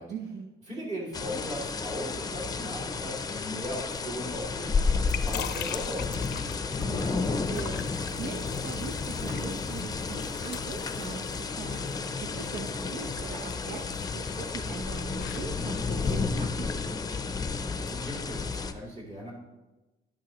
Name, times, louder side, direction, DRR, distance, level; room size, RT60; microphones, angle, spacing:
voice 1, 0.1-0.5 6.8-16.7, right 5 dB, 90° right, 3 dB, 0.8 m, -41 dB
voice 2, 0.7-4.7 5.2-6.6 17.9-19.3, equal, 45° right, -4 dB, 2.8 m, -38 dB
sound 1, 1.1-18.7, left 4 dB, 20° left, 0.5 m, -32 dB
sound 2, 4.7-16.3, left 12 dB, 85° left, 0.5 m, -44 dB
11.0 x 8.8 x 3.0 m, 1.1 s
cardioid pair, 125°, 17 cm